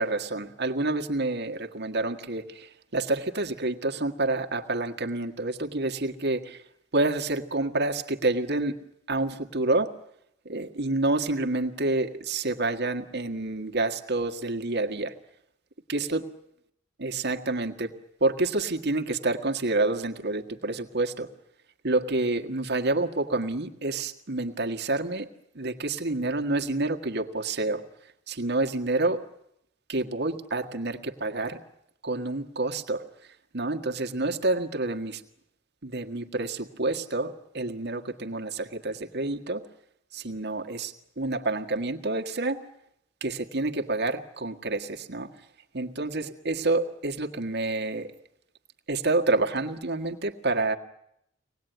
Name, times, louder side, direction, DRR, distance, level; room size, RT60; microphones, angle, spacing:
voice 1, 0.0-6.6 6.9-8.8 9.1-9.9 10.4-15.1 15.9-16.2 17.0-17.9 18.2-21.3 21.8-25.3 25.5-27.8 28.3-29.2 29.9-31.6 32.0-33.0 33.5-35.2 35.8-39.6 40.1-42.6 43.2-45.3 45.7-48.1 48.9-50.8, right 2 dB, 60° right, 5 dB, 1.7 m, -28 dB
24.5 x 19.5 x 9.2 m, 0.77 s
head